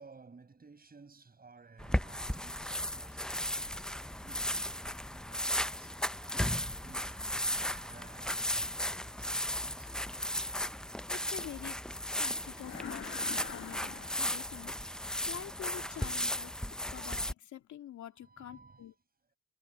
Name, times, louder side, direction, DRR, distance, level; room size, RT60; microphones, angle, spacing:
voice 1, 0.0-10.8 15.5-16.4 18.1-19.0, right 4 dB, 30° right, 6.5 m, -57 dB
sound 1, 1.8-17.3, left 1 dB, ahead, 0.5 m, -35 dB
voice 2, 11.1-11.8 12.2-14.7 15.3-16.5 16.9-18.9, left 11 dB, 70° left, 2.2 m, -46 dB
Demonic Anger, 12.5-14.9, left 7 dB, 40° left, 1.3 m, -46 dB
cardioid pair, 90°, 30 cm